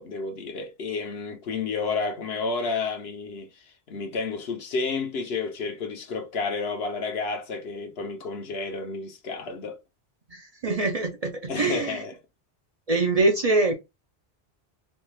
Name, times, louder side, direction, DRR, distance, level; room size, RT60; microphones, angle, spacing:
voice 1, 0.0-9.8 11.5-12.1, left 4 dB, 70° left, 1.1 m, -31 dB
voice 2, 10.3-12.0 12.9-13.7, right 2 dB, 45° right, 0.6 m, -24 dB
4.3 x 2.3 x 3.2 m
omnidirectional pair, 1.1 m